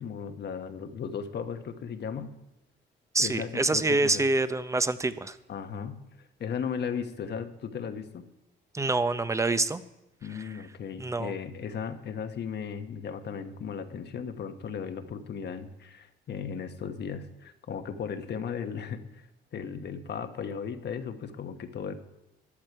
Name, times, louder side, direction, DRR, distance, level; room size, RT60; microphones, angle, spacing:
voice 1, 0.0-2.3 3.2-4.2 5.5-6.0 6.4-8.3 10.2-19.2 19.5-21.9, left 7 dB, 60° left, 8 dB, 1.2 m, -36 dB
voice 2, 3.1-5.4 8.7-9.8 10.3-10.5 11.0-11.3, right 2 dB, 15° right, 13 dB, 0.7 m, -26 dB
13.5 x 11.0 x 4.7 m, 0.92 s
cardioid pair, 90°, 20 cm